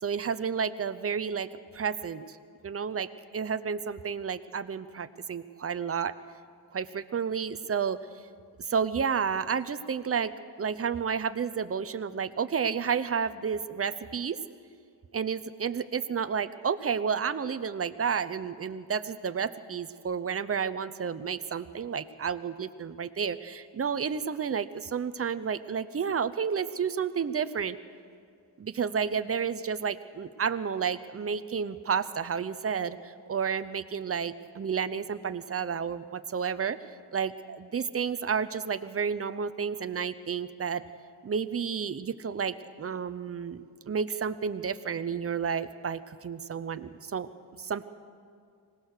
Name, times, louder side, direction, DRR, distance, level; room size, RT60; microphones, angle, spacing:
voice 1, 0.0-1.5 1.7-2.2 2.6-3.1 3.3-6.1 6.7-8.0 8.7-10.3 10.6-14.4 15.1-27.8 28.6-36.8 37.1-40.8 41.2-47.3 47.6-47.8, right 6 dB, 35° right, 12 dB, 0.6 m, -31 dB
25.0 x 18.0 x 6.6 m, 2.3 s
wide cardioid pair, 160°, 40 cm